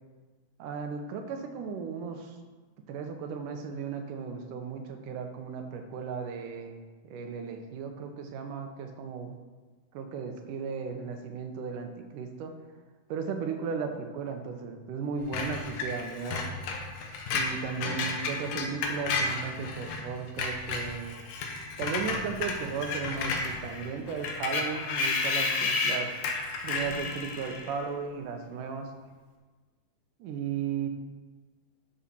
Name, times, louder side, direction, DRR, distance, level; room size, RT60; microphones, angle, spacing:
voice 1, 0.6-2.3 2.9-6.8 7.0-9.4 9.9-12.5 13.1-16.5 17.3-21.2 21.8-26.1 26.6-28.9 30.2-30.9, right 6 dB, 75° right, 5 dB, 2.3 m, -35 dB
Screech, 15.3-20.0 20.3-27.7, left 4 dB, 75° left, 2.7 m, -32 dB
11.0 x 7.1 x 4.3 m, 1.3 s
omnidirectional pair, 4.0 m